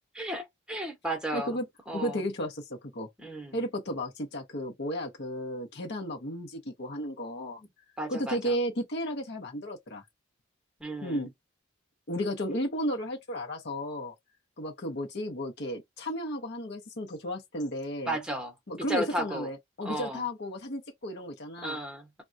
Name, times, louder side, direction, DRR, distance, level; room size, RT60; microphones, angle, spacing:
voice 1, 0.1-1.6 1.9-2.2 3.2-3.6 7.6-7.7 8.0-8.6 10.8-11.3 18.0-18.5 18.9-19.5 19.8-20.2 21.6-22.2, right 1 dB, 5° right, 0.9 m, -34 dB
voice 2, 1.3-1.6 1.9-3.1 3.5-7.6 8.1-10.0 11.0-11.3 12.1-14.1 14.6-18.2 18.7-21.8, equal, 55° left, 0.7 m, -33 dB
3.4 x 2.2 x 2.6 m
head